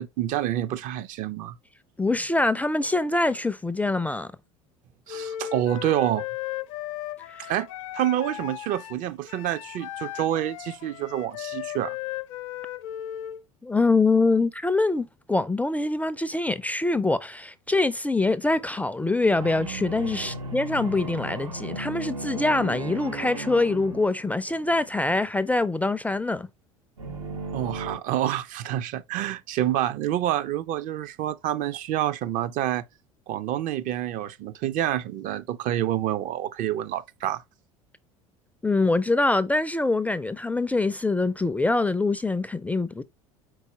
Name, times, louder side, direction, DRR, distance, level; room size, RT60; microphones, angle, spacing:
voice 1, 0.0-1.6 5.1-6.2 7.4-7.7 7.9-12.0 20.2-20.3 27.5-32.8 33.3-37.4, right 12 dB, 50° right, 0.5 m, -28 dB
voice 2, 2.0-4.3 13.6-26.5 38.6-43.0, left 2 dB, 10° left, 0.3 m, -24 dB
Wind instrument woodwind instrument, 5.1-13.4, left 13 dB, 70° left, 0.6 m, -36 dB
sound 1, 19.4-24.8 27.0-28.0, right 2 dB, 85° right, 1.0 m, -35 dB
4.7 x 4.0 x 2.8 m
hypercardioid pair, 75°, 17 cm